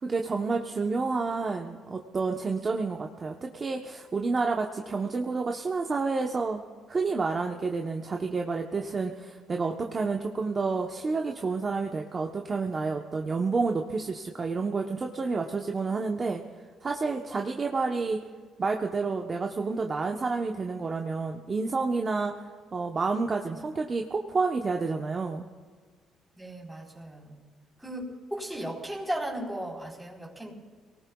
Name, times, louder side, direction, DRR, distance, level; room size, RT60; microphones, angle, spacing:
voice 1, 0.0-6.6 6.9-16.4 16.8-18.2 18.6-22.3 22.7-25.5, right 4 dB, 35° right, 2 dB, 1.0 m, -29 dB
voice 2, 26.3-27.3 27.8-30.5, right 1 dB, 5° right, -4 dB, 4.1 m, -36 dB
29.5 x 19.0 x 2.4 m, 1.6 s
cardioid pair, 100°, 0 cm